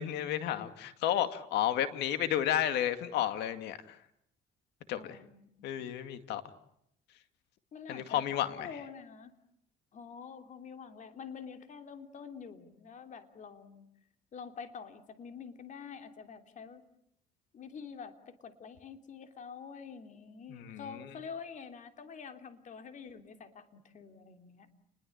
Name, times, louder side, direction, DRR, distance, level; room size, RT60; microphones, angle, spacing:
voice 1, 0.0-4.0 4.9-5.2 5.6-6.4 7.9-8.7 20.5-21.1, left 11 dB, 85° left, 10 dB, 2.2 m, -32 dB
voice 2, 4.9-5.7 7.7-8.3 8.6-9.3 9.9-13.9 14.3-16.8 17.5-24.7, left 6 dB, 50° left, 7 dB, 3.1 m, -47 dB
29.5 x 21.5 x 8.7 m, 0.75 s
cardioid pair, 110°, 17 cm